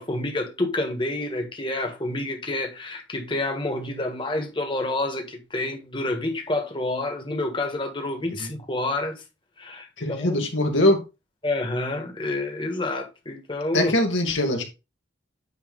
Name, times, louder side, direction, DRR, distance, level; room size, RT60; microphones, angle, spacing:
voice 1, 0.0-9.2 9.6-10.5 11.4-13.9, left 2 dB, 25° left, 1.7 m, -28 dB
voice 2, 10.0-11.0 13.7-14.6, left 1 dB, 85° left, 2.3 m, -22 dB
9.6 x 3.4 x 5.3 m
head